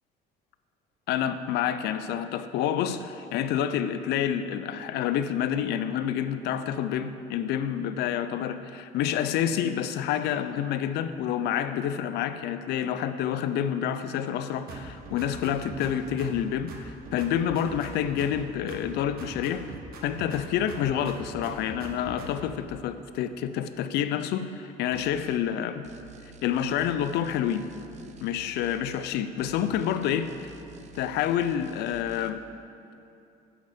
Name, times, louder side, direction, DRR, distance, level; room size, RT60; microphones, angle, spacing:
voice 1, 1.1-19.7 20.0-25.8 26.4-27.6 28.2-30.3 30.9-32.4, left 9 dB, 80° left, 11 dB, 0.5 m, -28 dB
sound 1, 14.7-16.4 16.7-18.4 18.7-20.4 20.7-22.6, right 3 dB, 65° right, 1.2 m, -42 dB
sound 2, 24.9-25.4 25.8-29.1 29.4-32.3, right 7 dB, 45° right, 0.5 m, -50 dB
9.0 x 6.6 x 5.0 m, 2.7 s
cardioid pair, 110°, 17 cm